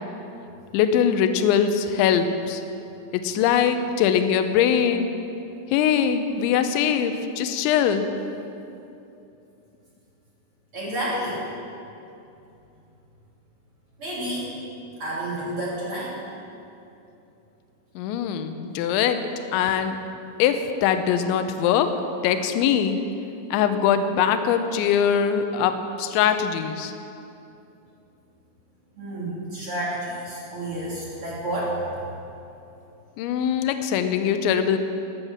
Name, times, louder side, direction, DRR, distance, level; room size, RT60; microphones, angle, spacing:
voice 1, 0.7-2.6 3.2-5.1 5.7-8.1 18.0-19.2 19.5-20.0 20.4-21.9 22.2-23.0 23.5-25.7 26.0-26.9 33.2-34.8, left 8 dB, 80° left, 8 dB, 2.9 m, -22 dB
voice 2, 10.7-11.5 14.0-14.5 15.0-16.2 29.0-31.8, right 1 dB, 35° right, -7 dB, 2.8 m, -30 dB
13.5 x 11.0 x 7.3 m, 2.8 s
omnidirectional pair, 5.9 m